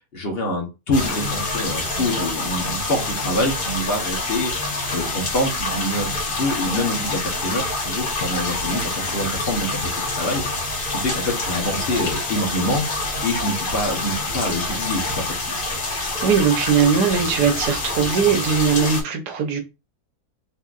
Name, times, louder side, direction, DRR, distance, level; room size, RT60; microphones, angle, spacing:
voice 1, 0.1-4.5 4.9-10.4 10.9-12.8 13.2-15.5, left 1 dB, 45° left, 1.0 m, -26 dB
sound 1, 0.9-19.0, left 2 dB, 80° left, 1.9 m, -26 dB
voice 2, 15.9-19.6, right 6 dB, 85° right, 1.3 m, -20 dB
3.7 x 2.8 x 2.4 m
omnidirectional pair, 1.7 m